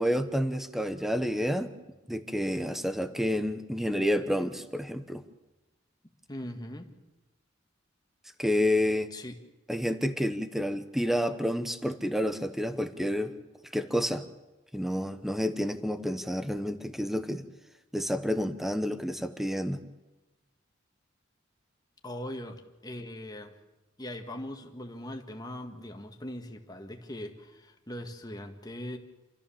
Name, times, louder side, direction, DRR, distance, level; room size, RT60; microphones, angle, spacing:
voice 1, 0.0-1.7 2.1-5.2 8.4-9.1 9.7-13.3 13.7-14.2 14.7-17.4 17.9-19.8, equal, ahead, 9 dB, 1.0 m, -29 dB
voice 2, 6.3-6.9 9.1-9.4 22.0-23.5 24.0-29.0, left 1 dB, 20° left, 4 dB, 1.7 m, -40 dB
27.5 x 14.0 x 7.2 m, 1.1 s
head